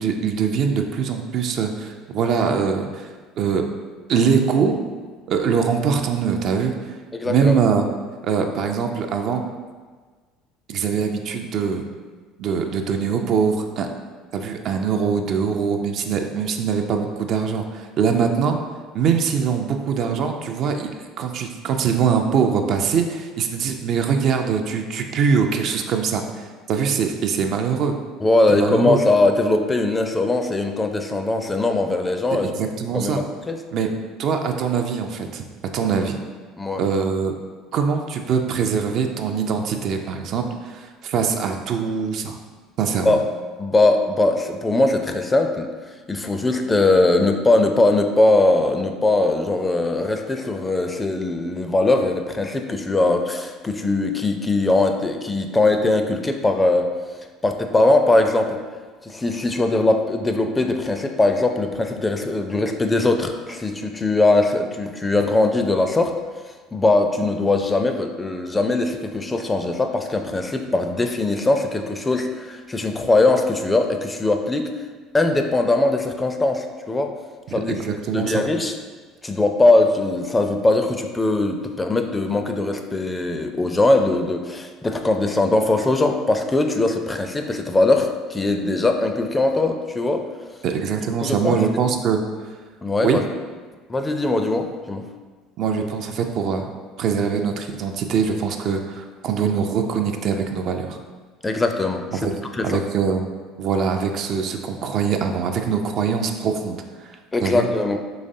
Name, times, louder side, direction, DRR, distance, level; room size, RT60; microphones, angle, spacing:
voice 1, 0.0-3.1 3.4-3.7 4.1-4.8 5.3-6.7 7.2-7.8 8.2-9.4 10.7-11.8 12.4-13.9 14.3-18.6 18.9-20.9 21.2-27.9 28.5-29.0 32.5-33.2 33.7-33.9 34.2-35.4 35.7-36.2 36.8-37.3 37.7-42.4 42.8-43.2 77.5-78.4 90.6-92.2 93.0-93.2 95.6-96.7 97.0-101.0 102.1-102.3 102.6-103.2 103.6-107.1 107.4-107.7, right 6 dB, 55° right, 4 dB, 0.3 m, -23 dB
voice 2, 7.1-7.6 28.2-32.5 32.9-33.6 36.6-36.8 43.1-43.2 43.6-45.7 46.1-56.9 57.4-58.6 59.0-66.2 66.7-74.7 75.1-77.1 77.5-77.8 78.1-78.7 79.2-90.2 91.2-91.6 92.8-93.2 93.9-95.0 101.4-102.2 102.5-102.8 107.3-108.0, left 2 dB, 20° left, 5 dB, 0.4 m, -20 dB
3.9 x 3.1 x 2.6 m, 1.4 s
hypercardioid pair, 65°, 0 cm